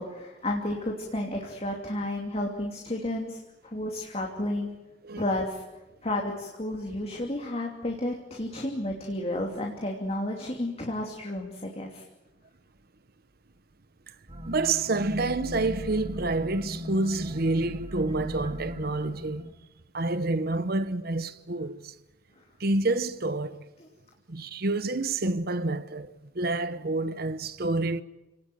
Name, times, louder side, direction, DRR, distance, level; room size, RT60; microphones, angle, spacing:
voice 1, 0.0-3.4 3.6-4.7 5.2-5.6 6.0-12.0 23.8-23.9, left 1 dB, 35° left, 2.8 m, -32 dB
sound 1, 14.3-19.5, equal, 30° right, 2.5 m, -38 dB
voice 2, 14.5-19.5 19.9-21.9 22.6-23.6 24.3-28.0, right 2 dB, 55° right, 1.0 m, -28 dB
29.5 x 18.5 x 9.3 m
head